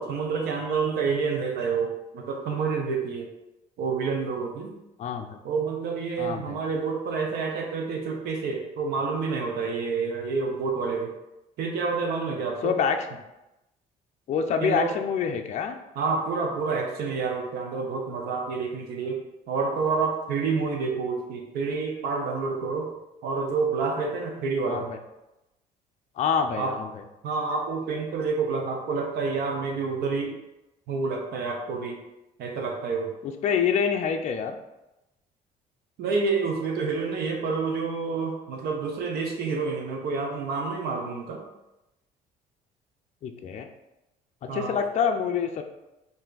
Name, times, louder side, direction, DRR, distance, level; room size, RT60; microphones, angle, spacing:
voice 1, 0.0-3.3 3.8-4.7 5.4-11.1 11.6-12.7 14.6-15.0 16.0-19.2 19.5-22.9 23.2-24.9 26.6-26.7 27.2-30.3 30.9-32.0 32.4-33.1 36.0-41.4 44.5-44.8, right 4 dB, 70° right, 1 dB, 0.7 m, -28 dB
voice 2, 5.0-5.4 6.2-6.6 12.6-13.0 14.3-15.8 24.7-25.0 26.2-26.9 33.2-34.6 43.2-43.7 44.4-45.6, left 7 dB, 45° left, 5 dB, 0.4 m, -26 dB
3.2 x 2.6 x 3.8 m, 0.95 s
cardioid pair, 110°, 17 cm